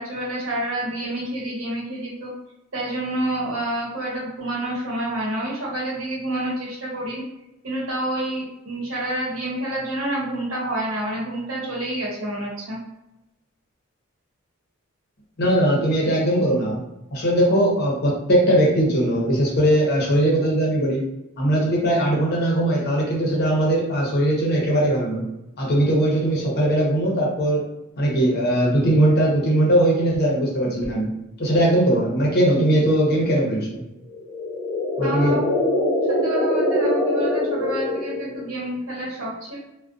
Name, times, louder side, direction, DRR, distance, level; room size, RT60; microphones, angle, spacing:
voice 1, 0.0-2.3 2.7-7.2 7.6-12.8 35.0-35.4 36.1-39.6, right 1 dB, 75° right, -4 dB, 0.9 m, -28 dB
voice 2, 15.4-16.8 17.1-21.0 21.4-25.2 25.6-27.6 28.0-31.1 31.4-33.8 35.0-35.4, right 1 dB, 50° left, -3 dB, 0.7 m, -20 dB
sound 1, 34.1-38.5, left 1 dB, 15° left, 1.1 m, -23 dB
2.4 x 2.1 x 2.4 m, 0.91 s
head